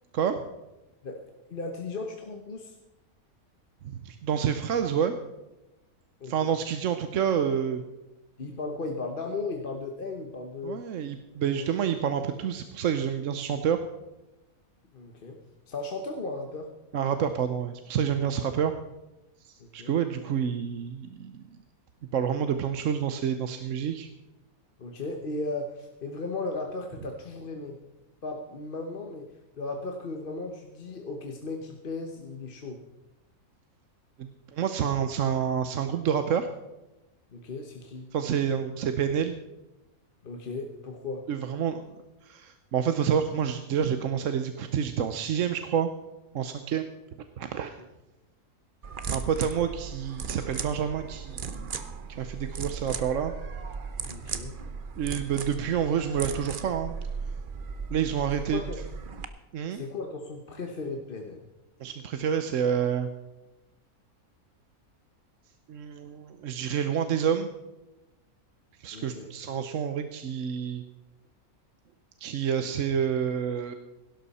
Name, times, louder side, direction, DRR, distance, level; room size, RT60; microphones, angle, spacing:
voice 1, 1.0-2.7 6.2-6.5 8.4-10.8 11.5-11.7 14.9-15.4 15.7-16.7 19.6-19.9 24.8-27.8 28.2-29.3 29.6-32.8 37.3-38.1 40.2-41.3 54.1-54.5 58.5-58.8 59.7-61.4 68.9-69.3, left 3 dB, 40° left, 3 dB, 1.1 m, -36 dB
voice 2, 3.8-5.1 6.2-7.8 10.6-13.8 16.9-18.8 19.4-21.4 22.1-24.1 34.2-36.5 38.1-39.3 41.3-41.8 42.2-45.9 46.3-46.9 47.4-47.8 49.1-53.3 55.0-57.0 57.9-58.6 59.5-59.8 61.8-63.1 65.7-67.5 68.8-70.8 72.2-73.7, right 8 dB, 65° right, 8 dB, 1.1 m, -28 dB
sound 1, 48.8-59.2, right 5 dB, 45° right, 0.8 m, -37 dB
17.0 x 12.0 x 4.2 m, 0.99 s
omnidirectional pair, 1.6 m